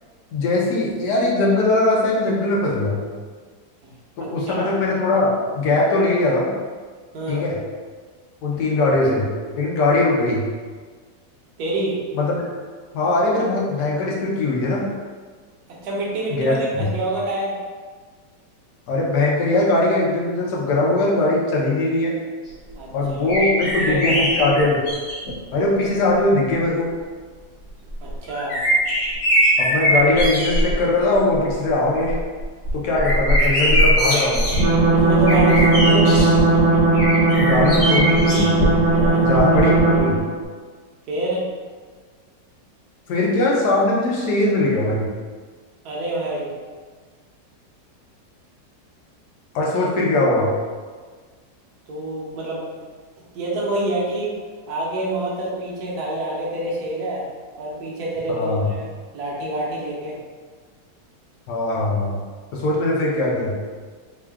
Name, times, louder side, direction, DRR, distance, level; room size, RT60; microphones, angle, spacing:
voice 1, 0.3-3.0 4.2-6.5 7.3-7.6 8.4-9.3 9.6-10.4 12.1-12.4 12.9-14.9 16.4-16.9 18.9-22.2 22.9-24.8 25.5-26.9 29.6-32.2 32.7-34.5 37.4-38.5 39.2-40.2 43.1-45.1 49.5-50.5 58.3-58.7 61.5-62.2 62.5-63.6, left 2 dB, 70° left, -3 dB, 1.2 m, -20 dB
voice 2, 4.2-4.7 7.1-7.4 11.6-12.0 15.8-17.6 22.7-22.9 23.4-24.2 28.0-28.6 34.9-36.3 38.9-39.3 41.1-41.4 45.8-46.5 51.9-52.6 53.3-54.3 54.7-57.2 57.6-60.1, right 1 dB, 65° right, -5 dB, 1.3 m, -27 dB
sound 1, 23.3-25.3 26.2-26.3 27.9-30.8 31.1-31.5 31.9-36.3 36.9-39.1 39.3-39.4, equal, 50° left, 1.2 m, -21 dB
sound 2, 34.5-40.3, right 3 dB, 80° right, 1.5 m, -17 dB
3.6 x 2.3 x 3.4 m, 1.5 s
omnidirectional pair, 2.0 m